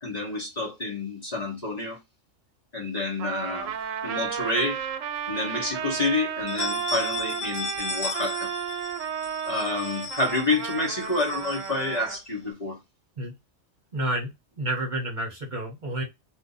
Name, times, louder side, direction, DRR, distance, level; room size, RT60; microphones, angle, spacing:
voice 1, 0.0-2.0 2.7-3.7 4.0-4.8 5.3-8.5 9.4-12.8, left 2 dB, 35° left, 1.0 m, -28 dB
Trumpet, 3.2-12.2, right 8 dB, 85° right, 1.0 m, -33 dB
sound 1, 3.8-4.7 5.1-5.2 5.6-5.7 6.3-12.5, left 4 dB, 60° left, 1.1 m, -37 dB
voice 2, 13.9-14.3 14.6-16.0, right 1 dB, 40° right, 1.0 m, -29 dB
2.6 x 2.6 x 3.7 m
omnidirectional pair, 1.3 m